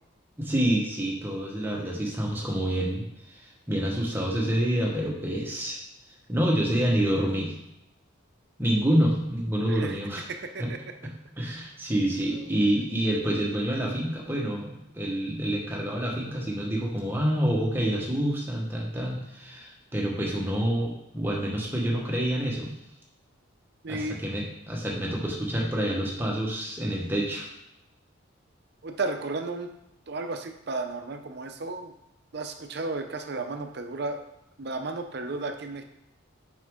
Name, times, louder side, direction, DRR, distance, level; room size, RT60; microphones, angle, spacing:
voice 1, 0.4-3.0 3.3-5.8 6.3-7.6 8.6-10.2 10.6-10.7 11.4-22.7 23.9-27.5, right 1 dB, 10° right, -2 dB, 1.1 m, -27 dB
voice 2, 23.8-24.2 28.8-29.7 30.1-31.9 32.3-34.2 34.6-35.8, right 3 dB, 50° right, 6 dB, 0.6 m, -33 dB
6.3 x 5.2 x 3.6 m, 0.86 s
head